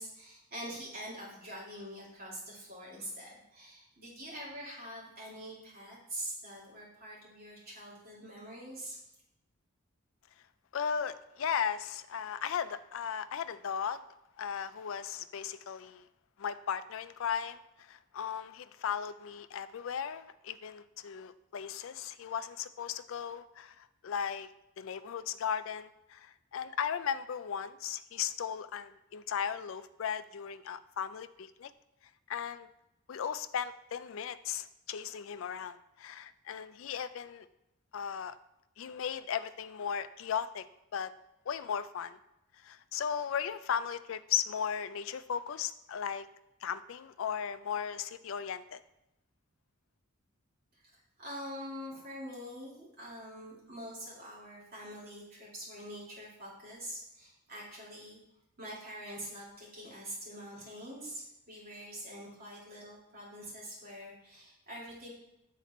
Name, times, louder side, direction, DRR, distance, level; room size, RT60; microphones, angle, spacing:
voice 1, 0.0-9.0 50.7-58.2 58.6-65.1, equal, 45° right, -6 dB, 2.4 m, -45 dB
voice 2, 10.7-14.0 14.4-16.1 16.4-24.5 24.8-31.7 32.3-32.7 33.1-37.5 37.9-38.4 38.8-40.7 40.9-41.1 41.5-42.2 42.6-46.3 46.6-48.8, left 7 dB, 65° left, 13 dB, 0.3 m, -36 dB
7.5 x 4.1 x 4.2 m, 0.88 s
head